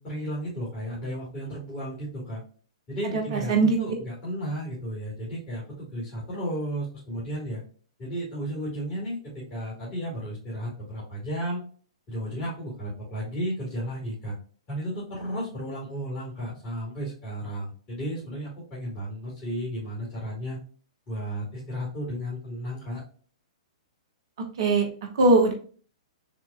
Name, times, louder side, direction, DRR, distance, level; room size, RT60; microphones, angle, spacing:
voice 1, 0.0-2.4 2.9-7.6 8.0-11.6 12.1-14.3 14.7-20.6 21.1-23.0, equal, 30° left, -6 dB, 2.2 m, -33 dB
voice 2, 3.1-3.8 24.6-24.8 25.1-25.5, right 3 dB, 50° right, 3 dB, 1.2 m, -20 dB
6.8 x 3.0 x 2.3 m, 0.42 s
figure-of-eight pair, 115°, 3 cm